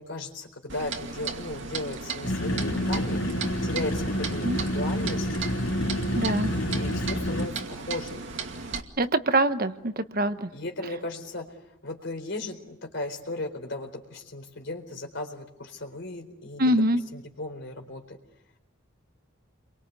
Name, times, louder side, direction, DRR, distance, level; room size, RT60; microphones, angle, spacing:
voice 1, 0.0-3.2 3.6-5.4 6.3-8.2 10.5-11.5 11.8-16.8 17.1-18.2, left 2 dB, 60° left, 5 dB, 4.2 m, -36 dB
Clock, 0.7-8.8, right 5 dB, 65° right, 2.3 m, -36 dB
sound 1, 2.2-7.5, equal, 80° left, 3.1 m, -28 dB
voice 2, 6.1-6.5 9.0-10.5 16.6-17.0, right 1 dB, 45° right, 9 dB, 1.2 m, -24 dB
29.5 x 23.5 x 8.4 m, 0.83 s
head